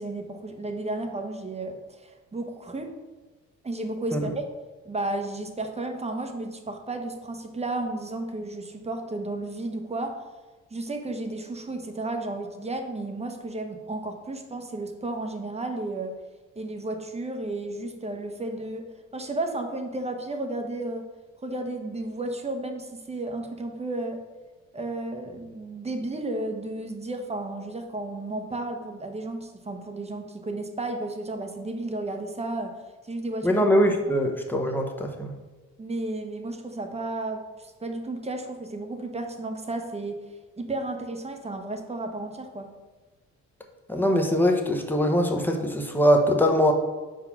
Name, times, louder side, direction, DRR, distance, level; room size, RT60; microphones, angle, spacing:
voice 1, 0.0-2.9 3.6-4.4 4.8-10.2 10.7-16.2 16.6-21.1 21.4-24.2 24.7-33.6 35.8-40.2 40.6-42.7, right 2 dB, 20° right, 4 dB, 0.8 m, -33 dB
voice 2, 33.4-35.3 43.9-46.7, equal, 5° left, 2 dB, 0.9 m, -22 dB
4.7 x 4.0 x 5.8 m, 1.3 s
cardioid pair, 90°, 30 cm